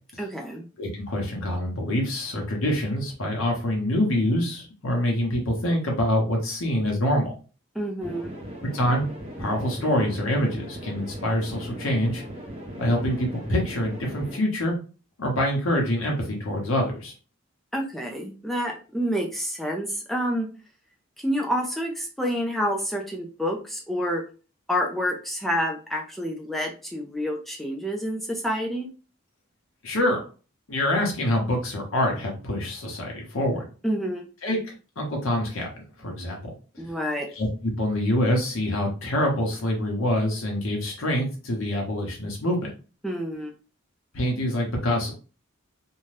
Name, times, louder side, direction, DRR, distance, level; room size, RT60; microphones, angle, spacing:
voice 1, 0.2-0.7 7.8-8.3 17.7-20.5 21.2-24.2 24.7-28.9 33.8-34.2 36.8-37.3 43.0-43.5, equal, ahead, 0 dB, 0.4 m, -28 dB
voice 2, 0.8-7.3 8.7-9.1 9.4-12.2 12.8-14.7 15.2-17.1 29.8-30.2 30.7-33.6 34.4-35.7 36.0-36.5 37.3-42.7 44.1-45.1, left 1 dB, 75° left, 0 dB, 0.8 m, -25 dB
sound 1, 8.0-14.4, equal, 30° right, 0.8 m, -38 dB
2.6 x 2.2 x 3.2 m, 0.35 s
head